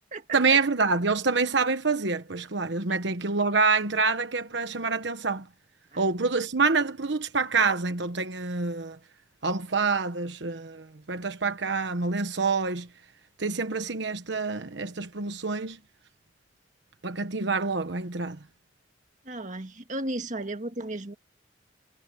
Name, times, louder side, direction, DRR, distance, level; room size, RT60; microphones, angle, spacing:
voice 1, 0.3-5.4 6.0-9.0 9.4-12.9 13.4-15.8 17.0-18.4, right 4 dB, 75° right, 1.2 m, -26 dB
voice 2, 19.3-21.2, right 2 dB, 40° right, 1.8 m, -34 dB
head